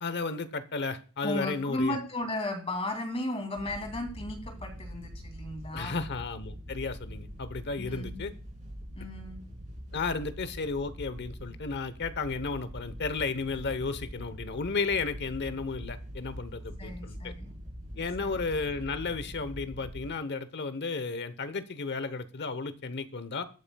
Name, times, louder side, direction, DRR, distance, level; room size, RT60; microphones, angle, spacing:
voice 1, 0.0-2.0 5.7-8.3 9.9-17.3 18.0-23.4, left 4 dB, 55° left, 13 dB, 0.9 m, -33 dB
voice 2, 1.2-6.0 7.8-8.2 8.9-9.4 16.8-17.5 18.2-18.4, left 1 dB, 30° left, 4 dB, 2.6 m, -35 dB
Wind / Boat Water vehicle, 3.6-20.1, equal, 40° right, 5.2 m, -43 dB
21.5 x 8.8 x 2.3 m, 0.39 s
head